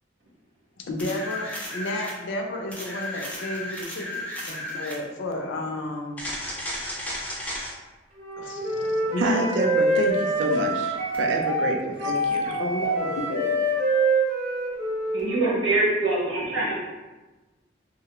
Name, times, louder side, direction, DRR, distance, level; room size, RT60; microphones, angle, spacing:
voice 1, 0.8-6.3 8.4-9.6 12.4-13.5, left 1 dB, 80° left, 1 dB, 0.4 m, -32 dB
sound 1, 1.0-2.2 2.7-5.0 6.2-7.7 11.1-11.2, left 1 dB, 10° left, 0.4 m, -34 dB
Wind instrument woodwind instrument, 8.2-15.6, right 1 dB, 35° right, 0.7 m, -25 dB
voice 2, 9.2-12.4, right 2 dB, 65° right, 2 dB, 0.3 m, -28 dB
voice 3, 15.1-16.8, right 2 dB, 85° right, -5 dB, 0.8 m, -24 dB
2.3 x 2.0 x 2.9 m, 1.2 s
head